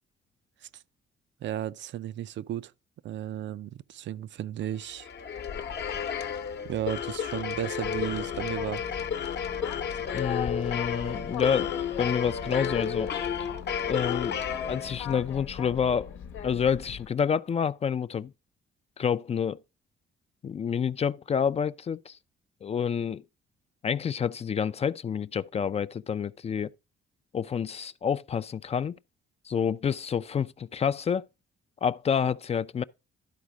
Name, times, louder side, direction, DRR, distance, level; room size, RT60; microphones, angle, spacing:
voice 1, 1.4-2.7 3.0-5.1 6.6-8.8, right 12 dB, 65° right, 0.5 m, -34 dB
sound 1, 4.8-15.3, left 7 dB, 60° left, 0.9 m, -32 dB
Boat Water vehicle, 7.8-17.1, left 8 dB, 90° left, 1.0 m, -40 dB
voice 2, 10.1-13.1 13.9-14.4 14.7-16.1 16.4-18.3 19.0-19.6 20.4-22.2 22.6-23.2 23.8-26.7 27.3-29.0 29.5-31.3 31.8-32.8, left 7 dB, 30° left, 0.4 m, -28 dB
11.5 x 4.2 x 4.8 m
cardioid pair, 90°, 20 cm